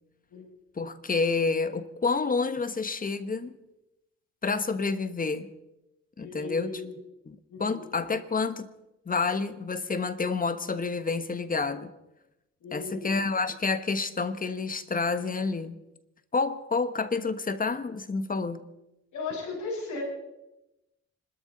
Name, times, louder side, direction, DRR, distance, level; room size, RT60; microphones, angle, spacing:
voice 1, 0.8-3.5 4.4-5.5 6.2-6.8 7.3-8.7 9.1-11.9 12.7-15.8 16.3-18.6, left 4 dB, 30° left, 1.2 m, -29 dB
voice 2, 6.2-7.0 7.5-7.9 12.6-13.1 19.1-20.0, left 3 dB, 70° left, 6.6 m, -36 dB
26.0 x 13.0 x 4.1 m
cardioid pair, 90°, 30 cm